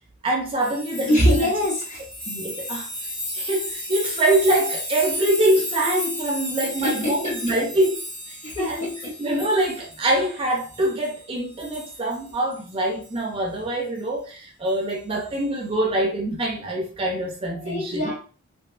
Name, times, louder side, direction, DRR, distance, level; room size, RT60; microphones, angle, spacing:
voice 1, 0.2-1.5 2.3-2.9 3.3-18.1, right 1 dB, 25° right, 2 dB, 0.4 m, -24 dB
sound 1, 0.6-11.3 11.6-12.6 13.0-13.2 14.9-15.1, left 1 dB, 5° left, 0.7 m, -33 dB
voice 2, 1.0-2.0 7.0-7.3 8.4-8.7 17.6-18.1, equal, 35° left, -1 dB, 0.9 m, -22 dB
3.2 x 2.4 x 2.3 m, 0.37 s
head